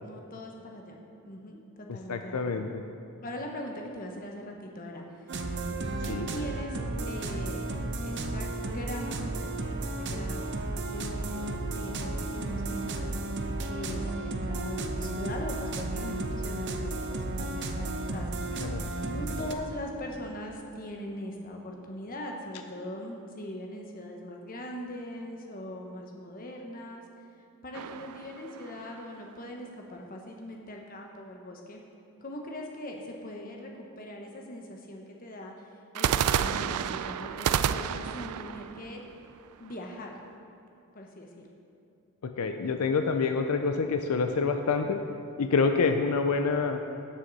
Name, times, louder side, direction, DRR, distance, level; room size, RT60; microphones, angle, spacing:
voice 1, 0.0-2.6 3.2-5.3 6.0-6.8 7.1-7.6 8.0-10.4 10.9-13.2 13.7-18.3 18.7-27.0 27.6-31.8 32.2-35.5 35.9-39.0 39.6-40.1 40.9-41.5, left 1 dB, 40° left, 1 dB, 1.2 m, -41 dB
voice 2, 1.9-2.8 6.1-6.3 18.6-18.9 42.2-45.0 45.4-46.8, left 4 dB, 85° left, 6 dB, 0.5 m, -27 dB
sound 1, 5.3-19.5, right 2 dB, 50° right, 0.7 m, -33 dB
sound 2, 27.7-29.2 35.9-39.9, right 9 dB, 85° right, 0.3 m, -30 dB
17.0 x 6.3 x 4.1 m, 2.6 s
head